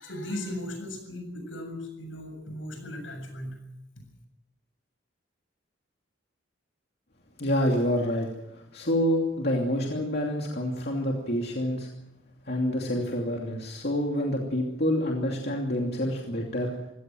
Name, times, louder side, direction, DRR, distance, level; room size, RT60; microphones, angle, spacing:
voice 1, 0.0-3.6, left 1 dB, 80° left, 6 dB, 7.3 m, -37 dB
voice 2, 7.4-8.3 8.5-11.9 12.5-16.7, equal, 55° left, 0 dB, 2.7 m, -27 dB
25.0 x 17.0 x 7.7 m, 0.88 s
head